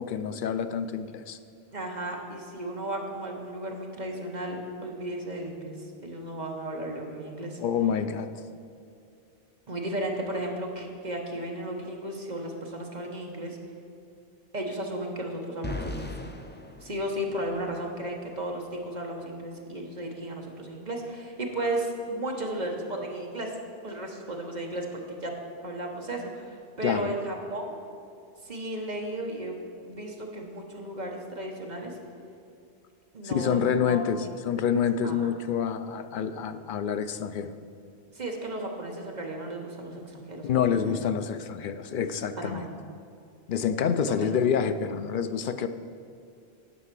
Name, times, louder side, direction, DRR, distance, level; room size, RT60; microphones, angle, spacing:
voice 1, 0.0-1.4 7.6-8.4 26.8-27.1 33.2-37.5 40.4-42.6 43.5-45.7, left 7 dB, 60° left, 10 dB, 0.7 m, -27 dB
voice 2, 1.7-5.7 6.0-7.6 9.7-13.6 14.5-16.1 16.8-23.5 23.8-25.4 25.6-27.8 28.4-29.5 29.8-31.9 33.1-34.3 35.0-35.3 38.1-40.8 42.4-42.7 43.8-44.0, right 1 dB, 45° right, 1 dB, 1.2 m, -34 dB
sound 1, 15.6-17.8, left 2 dB, 15° left, 0.4 m, -38 dB
10.0 x 5.6 x 7.4 m, 2.5 s
omnidirectional pair, 1.1 m